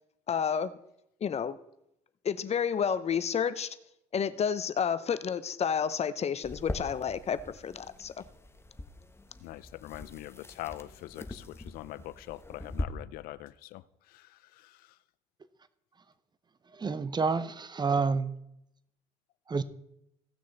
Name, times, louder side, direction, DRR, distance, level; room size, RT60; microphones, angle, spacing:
voice 1, 0.3-0.8 1.2-1.6 2.2-3.7 4.1-8.2, left 7 dB, 45° left, 14 dB, 0.8 m, -30 dB
sound 1, 6.4-12.8, left 2 dB, 15° left, 1.3 m, -42 dB
voice 2, 9.4-15.0, left 16 dB, 70° left, 18 dB, 0.5 m, -44 dB
voice 3, 16.8-18.4 19.5-19.6, right 4 dB, 25° right, 14 dB, 0.8 m, -28 dB
16.5 x 6.3 x 4.1 m, 0.80 s
hypercardioid pair, 60°, 16 cm